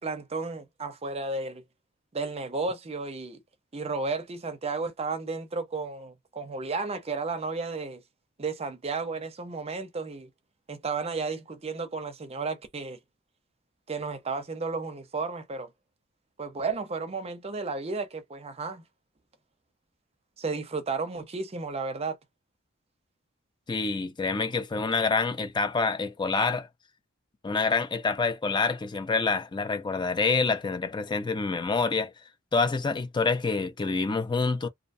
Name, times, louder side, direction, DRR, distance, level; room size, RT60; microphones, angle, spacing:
voice 1, 0.0-1.6 2.1-3.4 3.7-8.0 8.4-10.3 10.7-13.0 13.9-15.7 16.4-18.8 20.4-22.2, right 4 dB, 30° right, 0.6 m, -33 dB
voice 2, 23.7-26.7 27.4-32.1 32.5-34.7, left 4 dB, 20° left, 0.4 m, -27 dB
2.5 x 2.2 x 2.6 m
head